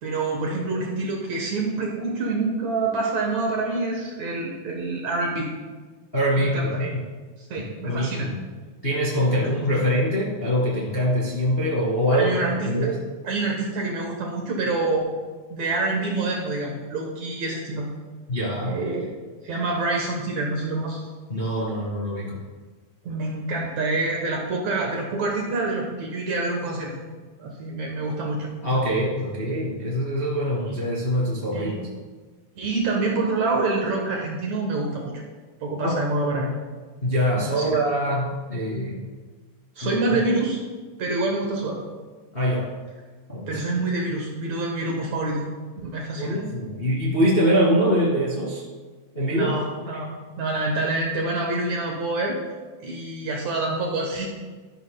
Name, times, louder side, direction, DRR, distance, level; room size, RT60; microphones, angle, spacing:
voice 1, 0.0-5.5 6.4-6.8 7.4-8.3 9.3-9.8 12.1-12.9 13.2-15.1 15.5-17.9 18.6-19.1 19.4-21.0 23.1-26.9 27.4-28.5 29.4-29.5 30.7-30.8 31.5-31.8 32.6-35.1 35.6-36.5 37.3-37.8 39.8-40.6 41.0-41.8 43.5-45.4 45.8-46.4 49.3-50.1 50.4-52.4 52.8-54.3, right 2 dB, 65° right, 0 dB, 2.1 m, -27 dB
voice 2, 6.1-7.0 7.6-8.4 8.8-12.3 12.6-12.9 18.3-18.7 21.3-22.4 28.6-31.7 35.8-35.9 37.0-39.0 39.8-39.9 42.3-42.7 43.3-43.5 46.2-48.6 49.1-49.5, equal, 25° left, -5 dB, 1.4 m, -23 dB
12.5 x 10.5 x 2.2 m, 1.4 s
omnidirectional pair, 3.9 m